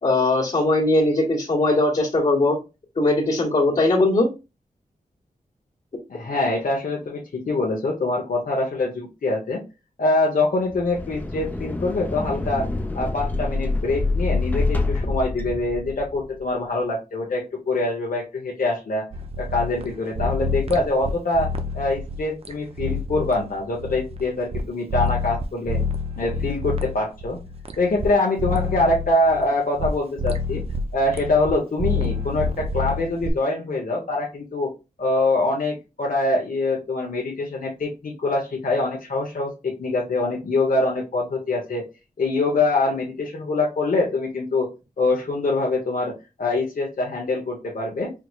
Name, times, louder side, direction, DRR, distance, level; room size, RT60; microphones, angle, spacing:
voice 1, 0.0-2.6 3.0-4.3, left 2 dB, 50° left, -8 dB, 1.6 m, -20 dB
voice 2, 6.1-9.6 10.0-12.7 12.9-19.0 19.4-25.8 26.2-27.4 27.8-30.6 30.9-34.7 35.0-41.8 42.2-44.7 45.0-46.1 46.4-48.1, left 2 dB, 70° left, -2 dB, 1.0 m, -24 dB
sound 1, 10.7-16.3, left 3 dB, 10° left, 0.7 m, -26 dB
sound 2, 19.1-24.6 24.9-28.1 28.4-29.9 30.2-31.5 31.8-33.3, left 3 dB, 40° right, 0.6 m, -28 dB
4.9 x 3.0 x 2.4 m, 0.27 s
wide cardioid pair, 130°, 15 cm